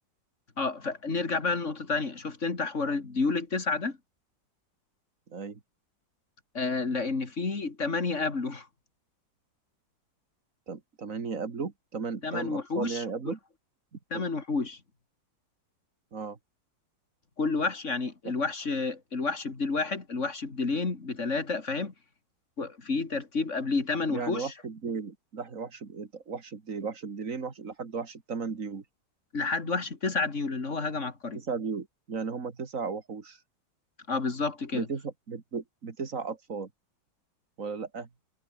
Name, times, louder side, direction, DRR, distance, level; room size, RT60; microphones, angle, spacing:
voice 1, 0.6-4.0 6.5-8.7 12.2-13.3 14.1-14.8 17.4-21.9 22.6-24.5 29.3-31.4 34.1-34.9, left 4 dB, 40° left, 2.9 m, -30 dB
voice 2, 5.3-5.6 10.7-13.4 13.9-14.3 16.1-16.4 24.1-28.8 31.3-33.4 34.7-36.7 37.6-38.1, right 5 dB, 45° right, 2.5 m, -35 dB
omnidirectional pair, 2.0 m